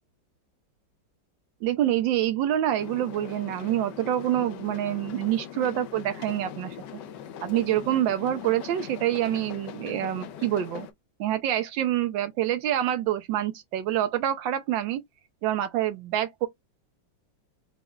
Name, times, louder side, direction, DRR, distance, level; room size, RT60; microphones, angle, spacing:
voice 1, 1.6-6.8 7.4-10.9 11.2-15.0 15.4-16.5, right 12 dB, 80° right, 1.3 m, -26 dB
sound 1, 2.8-10.9, left 9 dB, 70° left, 1.3 m, -40 dB
5.0 x 2.1 x 3.5 m
omnidirectional pair, 2.1 m